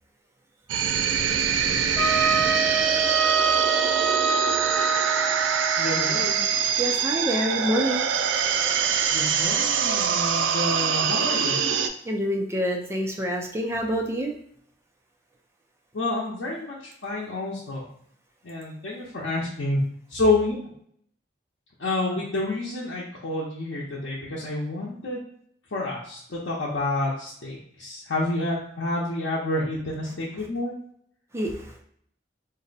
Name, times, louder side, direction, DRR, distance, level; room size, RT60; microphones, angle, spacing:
sound 1, 0.7-11.9, right 7 dB, 85° right, 0.3 m, -24 dB
Trumpet, 2.0-6.8, right 5 dB, ahead, 0.8 m, -25 dB
voice 1, 5.8-6.4 9.1-11.6 15.9-16.8 17.0-17.9 18.4-19.8 20.1-20.6 21.8-25.2 25.7-30.7, left 2 dB, 75° left, -7 dB, 0.7 m, -28 dB
voice 2, 6.8-8.1 12.0-14.3 31.3-31.6, equal, 15° right, 1 dB, 0.4 m, -26 dB
2.6 x 2.1 x 3.9 m, 0.65 s
head